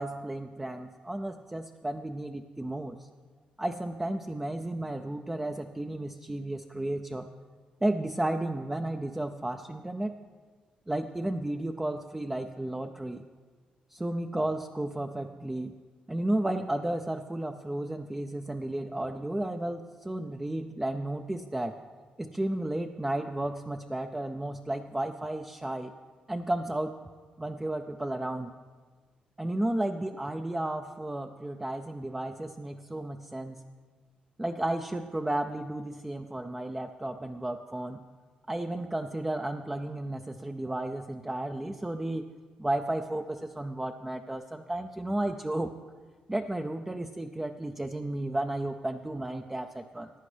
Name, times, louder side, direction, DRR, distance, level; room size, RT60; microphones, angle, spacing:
voice 1, 0.0-3.1 3.6-7.3 7.8-10.1 10.9-13.2 13.9-15.8 16.1-21.7 22.2-25.9 26.3-26.9 27.4-28.5 29.4-33.7 34.4-38.0 38.5-42.3 42.6-45.7 46.3-50.1, right 1 dB, 10° right, 6 dB, 0.4 m, -33 dB
14.5 x 9.7 x 3.3 m, 1.5 s
cardioid pair, 95°, 3 cm